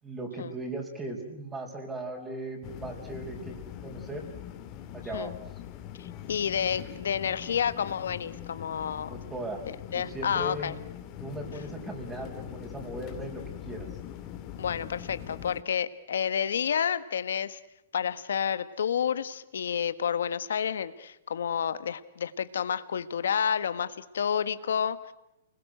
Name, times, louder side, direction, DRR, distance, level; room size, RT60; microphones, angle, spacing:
voice 1, 0.0-3.6 3.8-4.3 4.9-5.4 9.1-9.6 9.9-10.7 11.2-13.9, right 2 dB, 15° right, -1 dB, 5.2 m, -38 dB
sound 1, 2.6-15.6, left 11 dB, 40° left, 2.4 m, -42 dB
voice 2, 6.0-9.2 9.7-10.7 14.6-17.6 17.9-25.1, left 8 dB, 80° left, 13 dB, 1.4 m, -30 dB
29.0 x 21.5 x 8.0 m, 0.86 s
hypercardioid pair, 130°, 0 cm